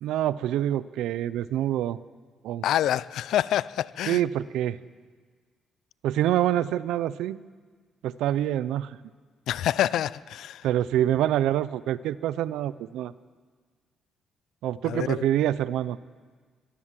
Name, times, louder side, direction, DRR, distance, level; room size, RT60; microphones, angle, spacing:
voice 1, 0.0-2.0 2.4-2.6 4.1-4.8 6.0-7.4 8.0-9.0 10.6-13.1 14.6-16.0, right 12 dB, 85° right, 16 dB, 0.7 m, -26 dB
voice 2, 2.6-4.2 9.5-10.7 14.8-15.3, left 12 dB, 80° left, 19 dB, 0.6 m, -27 dB
24.0 x 21.5 x 7.6 m, 1.5 s
cardioid pair, 90°, 0 cm